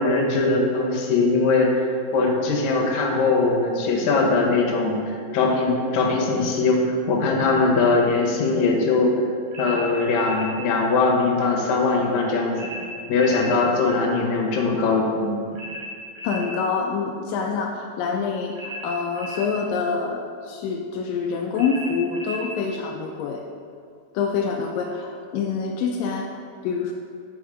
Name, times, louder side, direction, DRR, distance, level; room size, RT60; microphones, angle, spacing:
voice 1, 0.0-5.0 5.3-9.1 9.6-12.7 13.1-15.4, left 3 dB, 65° left, -1 dB, 1.9 m, -21 dB
sound 1, 9.5-10.5 12.6-13.5 15.6-16.5 18.6-19.5 21.6-22.5, equal, 80° right, 3.7 m, -35 dB
voice 2, 16.2-23.4 24.1-26.9, left 5 dB, 85° left, 1 dB, 1.9 m, -26 dB
8.0 x 4.4 x 4.8 m, 2.3 s
omnidirectional pair, 4.3 m